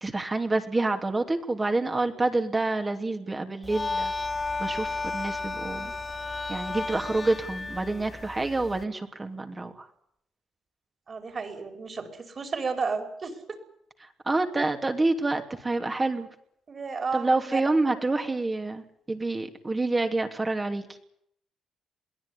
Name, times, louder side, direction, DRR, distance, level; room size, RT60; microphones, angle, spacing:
voice 1, 0.0-4.1 4.6-5.9 6.5-9.9 14.3-16.3 17.1-20.8, right 2 dB, 20° right, 5 dB, 2.9 m, -27 dB
sound 1, 3.6-8.8, left 3 dB, 25° left, 1.4 m, -33 dB
voice 2, 11.1-13.4 14.5-14.7 16.7-17.6, right 4 dB, 40° right, 7 dB, 5.3 m, -32 dB
22.5 x 16.5 x 10.0 m, 0.71 s
cardioid pair, 90°, 0 cm